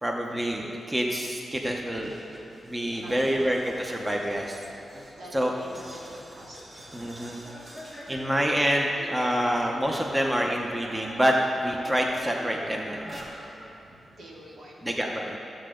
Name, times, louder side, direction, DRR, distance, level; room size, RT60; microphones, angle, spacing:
voice 1, 0.0-2.2 2.6-4.6 5.3-5.5 6.9-7.4 8.1-13.2 14.8-15.4, equal, 15° right, 0 dB, 0.8 m, -27 dB
sound 1, 2.0-11.3 11.6-13.7, equal, 30° right, 2.2 m, -46 dB
voice 2, 2.9-3.5 5.2-7.0 13.8-14.9, right 1 dB, 70° right, -4 dB, 2.2 m, -47 dB
15.0 x 7.7 x 3.8 m, 2.8 s
cardioid pair, 90°, 0 cm